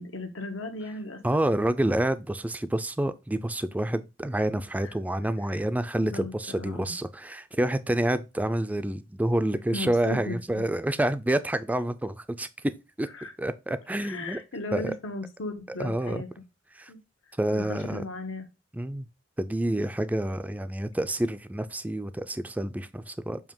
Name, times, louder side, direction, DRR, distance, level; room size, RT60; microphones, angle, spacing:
voice 1, 0.0-1.4 4.8-4.9 5.5-5.6 6.0-6.9 9.7-10.6 13.1-13.3 14.0-16.3 16.9-17.0 17.5-18.5, left 2 dB, 90° left, 1.2 m, -37 dB
voice 2, 1.2-13.1 13.4-14.4 14.7-14.9 15.8-16.2 16.7-16.9 17.4-18.0 18.7-19.1 19.4-23.4, right 1 dB, 10° right, 0.3 m, -28 dB
7.1 x 2.9 x 5.3 m
head